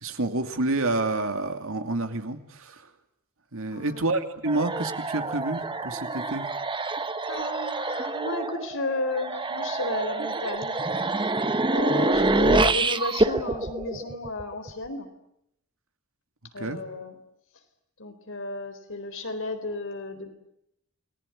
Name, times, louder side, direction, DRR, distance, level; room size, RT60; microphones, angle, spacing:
voice 1, 0.0-2.9 3.5-6.5 16.6-16.8, right 2 dB, 65° right, 7 dB, 2.6 m, -29 dB
voice 2, 3.7-4.0 7.3-10.8 11.7-15.1 16.5-17.2 18.0-20.3, left 2 dB, 60° left, 7 dB, 4.1 m, -33 dB
sound 1, 4.5-14.7, right 2 dB, 20° right, 1.2 m, -27 dB
28.5 x 20.0 x 9.9 m, 0.78 s
head